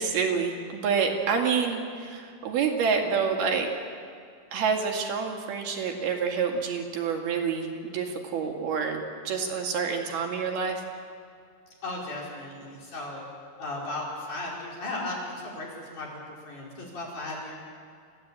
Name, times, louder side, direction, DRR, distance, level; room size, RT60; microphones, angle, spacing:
voice 1, 0.0-3.7 4.5-10.8, right 6 dB, 60° right, 2 dB, 3.9 m, -28 dB
voice 2, 11.8-13.2 13.6-17.6, left 2 dB, 45° left, -3 dB, 6.2 m, -36 dB
28.0 x 15.5 x 9.0 m, 2.3 s
omnidirectional pair, 5.2 m